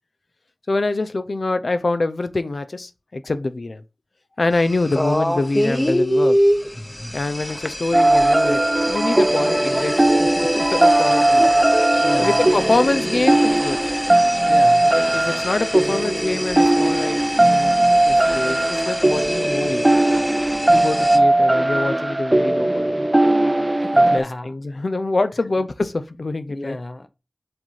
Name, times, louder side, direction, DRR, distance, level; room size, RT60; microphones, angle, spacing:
voice 1, 0.7-3.8 4.4-6.4 7.1-11.5 12.2-13.8 14.8-17.8 18.0-19.9 20.7-23.0 23.9-26.8, left 2 dB, 90° left, 0.6 m, -25 dB
sound 1, 4.5-21.2, equal, 20° left, 0.9 m, -26 dB
sound 2, 7.9-24.2, right 1 dB, 30° right, 0.5 m, -18 dB
voice 2, 12.0-12.4 14.4-14.9 23.8-24.5 26.5-27.1, left 1 dB, 45° left, 0.8 m, -32 dB
7.7 x 2.7 x 5.7 m
wide cardioid pair, 55°, 0 cm